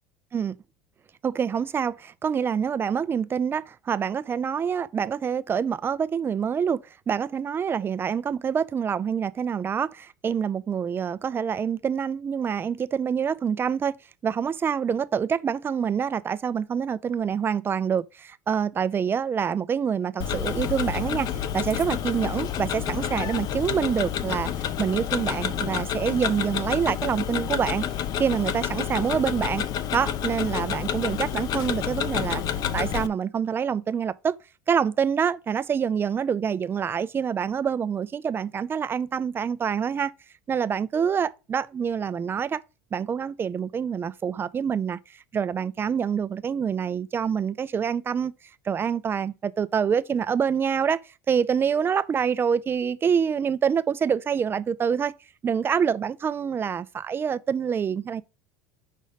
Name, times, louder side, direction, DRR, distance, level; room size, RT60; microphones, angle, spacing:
voice 1, 1.2-13.9 14.2-21.3 21.5-24.5 24.8-27.9 28.2-29.6 29.9-32.4 32.7-34.4 34.7-40.1 40.5-42.6 42.9-45.0 45.3-48.3 48.6-51.0 51.3-55.1 55.4-58.2, right 7 dB, 25° right, 0.4 m, -26 dB
Tick-tock, 20.2-33.1, left 9 dB, 50° left, 0.6 m, -29 dB
5.2 x 3.9 x 5.0 m
supercardioid pair, 100°, 8 cm